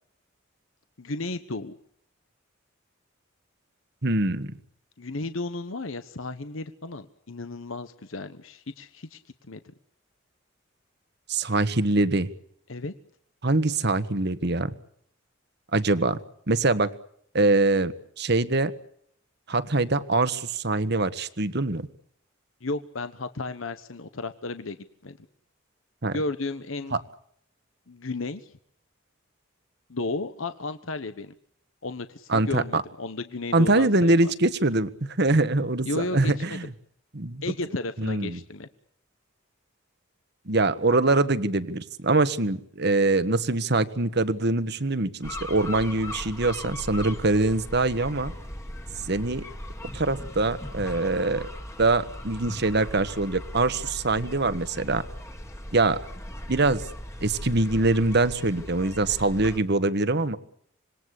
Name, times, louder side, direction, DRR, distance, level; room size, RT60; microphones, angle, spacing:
voice 1, 1.0-1.8 5.0-9.2 9.5-9.6 12.7-12.9 22.6-24.8 25.0-25.3 26.1-27.0 27.9-28.6 29.9-31.3 31.8-34.3 35.8-36.7 37.4-38.7, left 2 dB, 75° left, 10 dB, 1.1 m, -33 dB
voice 2, 4.0-4.5 11.3-12.3 13.4-14.7 15.7-16.2 16.5-16.9 17.3-18.7 19.5-21.9 26.0-26.2 26.9-27.0 32.3-32.8 33.5-34.9 35.2-36.7 37.1-37.4 38.0-38.4 40.5-48.3 49.1-49.4 49.9-51.5 51.8-55.0 55.7-56.0 56.5-56.8 57.2-60.4, right 2 dB, 55° right, 12 dB, 1.4 m, -23 dB
sound 1, 45.2-59.6, left 1 dB, 15° left, 1.9 m, -38 dB
26.0 x 20.5 x 8.3 m, 0.67 s
head